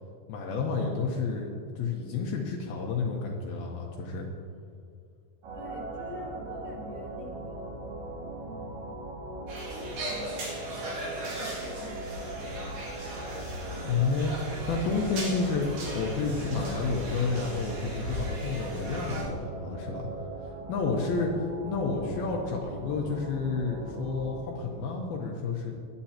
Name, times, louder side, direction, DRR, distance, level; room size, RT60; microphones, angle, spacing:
voice 1, 0.3-1.5 1.8-4.3 13.8-20.1 20.7-25.7, left 4 dB, 75° left, 0 dB, 2.4 m, -30 dB
sound 1, 5.4-24.4, right 2 dB, 90° right, 4.5 m, -40 dB
voice 2, 5.5-7.7 8.3-9.0 9.7-12.9, left 1 dB, 30° left, -6 dB, 1.8 m, -47 dB
sound 2, 9.5-19.2, equal, 55° right, 3.5 m, -37 dB
23.0 x 8.3 x 2.9 m, 2.4 s
omnidirectional pair, 5.2 m